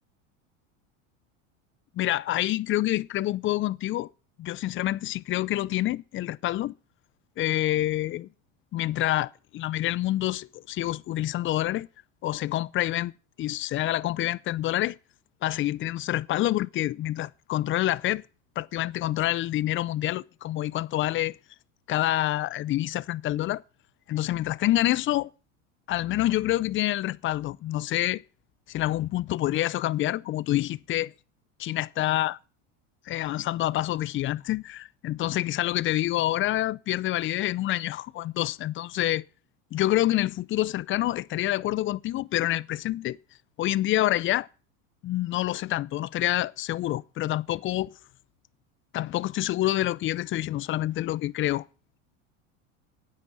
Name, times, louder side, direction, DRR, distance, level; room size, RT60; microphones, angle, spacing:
voice 1, 1.9-4.1 4.4-6.7 7.4-8.3 8.7-11.9 12.2-13.1 13.4-15.0 15.4-18.2 18.6-21.4 21.9-23.6 24.1-25.3 25.9-28.2 28.7-31.1 31.6-32.4 33.1-39.2 39.7-43.2 43.6-44.5 45.0-47.9 48.9-51.6, left 15 dB, 35° left, 0.5 m, -27 dB
9.8 x 8.9 x 7.1 m
supercardioid pair, 100°, 38 cm